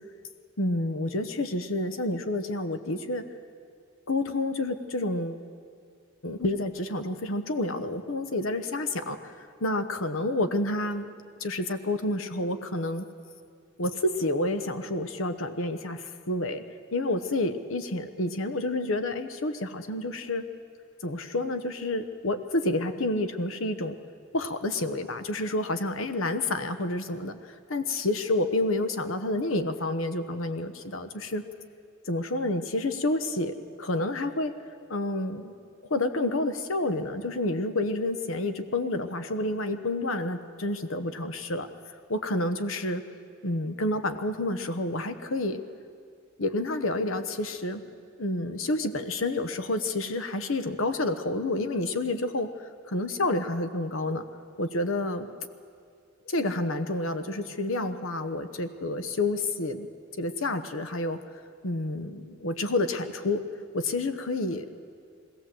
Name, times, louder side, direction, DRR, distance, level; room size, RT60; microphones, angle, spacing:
voice 1, 0.6-3.2 4.1-5.4 6.2-11.1 11.4-13.1 13.8-16.6 16.9-20.5 21.0-24.0 24.3-31.4 32.0-34.5 34.9-35.5 35.9-41.7 42.1-43.0 43.4-45.6 46.4-47.8 48.2-54.2 54.6-55.3 56.3-59.9 60.2-61.2 61.6-63.4 63.7-64.7, left 2 dB, 85° left, 9 dB, 1.0 m, -29 dB
21.0 x 16.5 x 7.7 m, 2.3 s
head